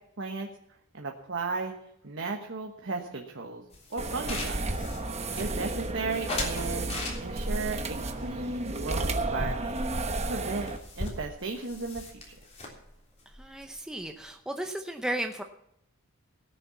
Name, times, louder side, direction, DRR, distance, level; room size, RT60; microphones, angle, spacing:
voice 1, 0.2-0.5 0.9-1.7 2.0-3.6 3.9-4.7 5.4-9.7 10.3-10.7 11.0-12.4, right 3 dB, 60° right, 2 dB, 1.3 m, -35 dB
sound 1, 3.7-5.8 6.3-7.6 8.2-9.4 9.7-9.8 10.1-10.2 10.4-14.3, left 2 dB, 30° left, 3.4 m, -39 dB
sound 2, 4.0-10.8, right 2 dB, 30° right, 1.1 m, -32 dB
voice 2, 13.4-15.4, right 1 dB, 5° right, 4 dB, 0.7 m, -35 dB
17.5 x 7.0 x 7.1 m, 0.77 s
head